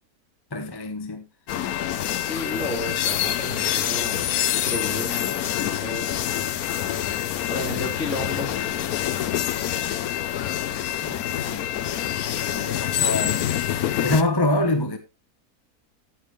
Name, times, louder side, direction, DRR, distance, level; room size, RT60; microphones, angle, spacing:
voice 1, 0.5-1.2 11.0-11.7 12.5-13.5 14.0-15.0, left 2 dB, 20° left, 0.9 m, -25 dB
sound 1, 1.5-14.2, left 11 dB, 75° left, 1.2 m, -26 dB
voice 2, 2.2-4.3 4.6-6.1 7.5-9.0, left 1 dB, 50° left, 4.2 m, -33 dB
13.5 x 9.0 x 3.2 m
omnidirectional pair, 1.6 m